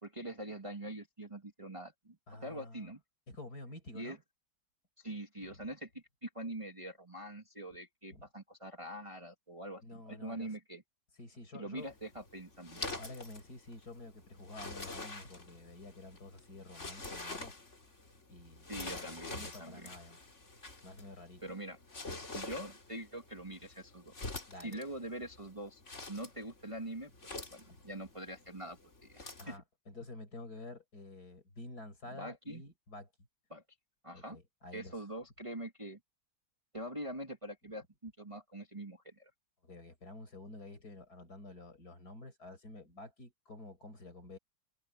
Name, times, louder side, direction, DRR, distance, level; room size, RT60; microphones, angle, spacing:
voice 1, 0.0-3.0 3.9-4.2 5.0-10.8 11.5-12.8 18.7-19.9 21.4-21.8 22.3-24.1 24.6-25.8 26.1-27.1 27.5-28.8 29.1-29.6 32.1-32.6 33.5-33.6 34.0-34.4 34.7-36.0 36.7-39.3, right 1 dB, 15° right, 2.2 m, -44 dB
voice 2, 2.3-2.9 3.3-4.2 8.1-8.2 9.8-10.6 11.2-11.9 13.0-17.6 18.3-19.0 19.3-20.2 20.8-21.5 24.5-24.8 29.4-33.1 34.1-34.9 39.6-44.4, left 2 dB, 55° left, 6.2 m, -50 dB
sound 1, 11.8-29.6, left 2 dB, 40° left, 3.5 m, -47 dB
omnidirectional pair, 2.0 m